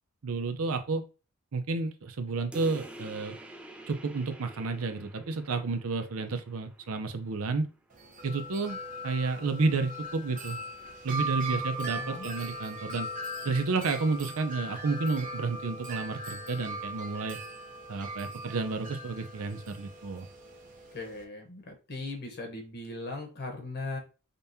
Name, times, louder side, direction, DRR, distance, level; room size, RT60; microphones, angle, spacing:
voice 1, 0.2-1.0 1.5-3.4 3.9-7.7 8.2-10.6 11.0-13.1 13.4-17.4 17.9-20.3, right 3 dB, 75° right, 7 dB, 0.6 m, -31 dB
sound 1, 2.5-7.6, right 1 dB, 5° right, 0.3 m, -48 dB
Wind chime, 7.9-21.2, right 1 dB, 40° right, 0.9 m, -39 dB
voice 2, 11.9-12.3 20.9-24.0, left 2 dB, 50° left, 2 dB, 1.0 m, -38 dB
5.2 x 2.3 x 2.7 m, 0.32 s
head